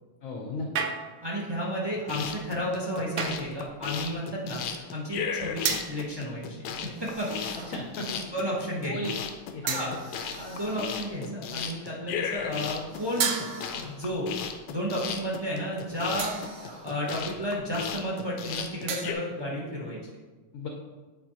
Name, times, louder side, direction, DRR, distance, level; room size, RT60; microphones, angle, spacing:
voice 1, 0.2-0.9 7.7-8.2 8.9-9.2 9.5-10.0 20.5-20.7, left 2 dB, 60° left, 1 dB, 0.9 m, -35 dB
sound 1, 0.8-1.4 3.2-3.6 5.6-6.1 7.2-7.6 8.2-8.4 9.7-10.3 13.2-14.0 16.2-16.7 18.9-19.4, right 6 dB, 85° right, 0.6 m, -32 dB
voice 2, 1.2-6.7 7.0-7.6 8.3-9.0 9.7-13.3 13.7-14.3 14.7-16.4 16.8-20.0, equal, 20° right, -4 dB, 0.7 m, -32 dB
sound 2, 2.0-19.1, left 7 dB, 90° left, 1.3 m, -35 dB
sound 3, 6.9-8.1 9.9-11.3 12.9-14.2 15.8-17.3, right 1 dB, 65° right, 2.1 m, -48 dB
7.9 x 4.8 x 2.9 m, 1.3 s
omnidirectional pair, 1.9 m